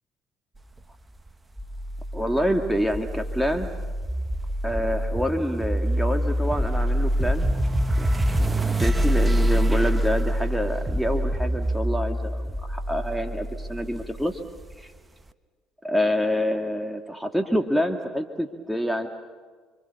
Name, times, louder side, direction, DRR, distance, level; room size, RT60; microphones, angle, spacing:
sound 1, 1.6-14.7, equal, 20° right, 1.4 m, -25 dB
voice 1, 2.1-3.7 4.6-7.5 8.0-8.1 8.4-14.4 14.8-14.9 15.8-19.1, equal, ahead, 5 dB, 2.1 m, -27 dB
30.0 x 25.0 x 7.0 m, 1.5 s
hypercardioid pair, 60°, 0 cm